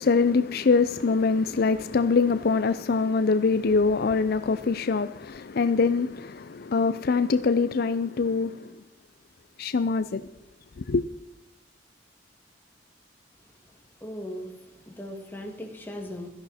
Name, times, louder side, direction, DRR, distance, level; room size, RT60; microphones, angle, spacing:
voice 1, 0.0-8.7 9.6-10.2 10.8-11.0, left 4 dB, 55° left, 0.5 m, -24 dB
voice 2, 14.0-16.3, left 1 dB, 10° left, 2.3 m, -38 dB
16.5 x 13.5 x 4.3 m
head